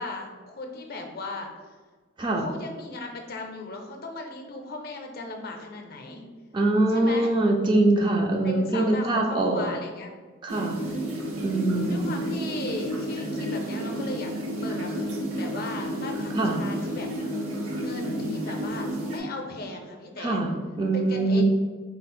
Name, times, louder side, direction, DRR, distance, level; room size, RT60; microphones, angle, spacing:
voice 1, 0.0-1.5 2.4-6.2 6.9-7.3 8.4-10.1 10.6-11.0 11.9-14.3 14.6-14.9 15.4-17.1 17.8-20.4 20.9-21.4, left 2 dB, 45° left, 3 dB, 0.5 m, -37 dB
voice 2, 6.5-9.7 10.4-10.8 11.4-12.1 16.4-16.6 20.2-21.4, right 2 dB, 20° right, 1 dB, 0.3 m, -23 dB
sound 1, 10.5-19.2, equal, 90° right, 0.7 m, -31 dB
4.0 x 2.1 x 4.1 m, 1.4 s
head